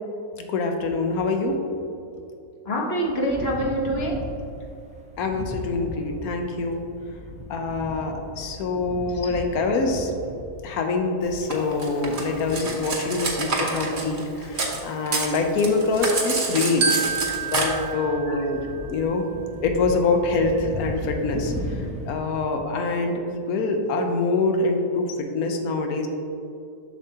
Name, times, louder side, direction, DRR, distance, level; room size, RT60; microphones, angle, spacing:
voice 1, 0.5-1.6 5.2-6.8 7.5-10.1 10.6-16.9 17.4-18.6 18.9-19.2 19.6-21.5 22.0-26.1, left 3 dB, 70° left, 4 dB, 1.1 m, -25 dB
voice 2, 2.6-4.2 9.1-9.3 13.0-13.1 18.3-18.5, right 1 dB, 45° left, -2 dB, 1.0 m, -26 dB
sound 1, 3.0-14.8 15.1-22.2, left 1 dB, 10° right, 0.3 m, -38 dB
Cutlery silverware, 11.5-14.8 15.1-17.6, right 3 dB, 40° right, 0.8 m, -27 dB
Glockenspiel, 16.8-19.3, right 5 dB, 80° right, 1.1 m, -29 dB
7.2 x 6.3 x 2.8 m, 2.7 s
omnidirectional pair, 1.7 m